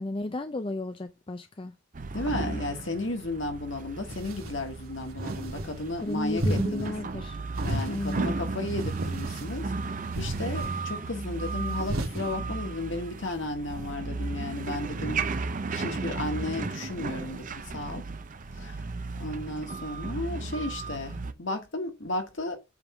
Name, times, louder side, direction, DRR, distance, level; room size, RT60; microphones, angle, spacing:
voice 1, 0.0-1.7 6.0-7.4 7.9-8.2, left 2 dB, 25° left, 0.4 m, -33 dB
sound 1, 1.9-21.3, right 3 dB, 40° right, 0.6 m, -34 dB
voice 2, 2.1-6.9 7.6-9.7 10.2-15.2 15.7-18.0 18.6-18.8 19.2-22.6, left 2 dB, 60° left, 1.7 m, -34 dB
sound 2, 4.1-4.6 5.1-5.7 6.3-6.9 7.5-8.2 8.7-9.6 10.1-10.7 11.7-12.2, right 1 dB, 85° right, 1.9 m, -33 dB
8.2 x 3.6 x 5.9 m
head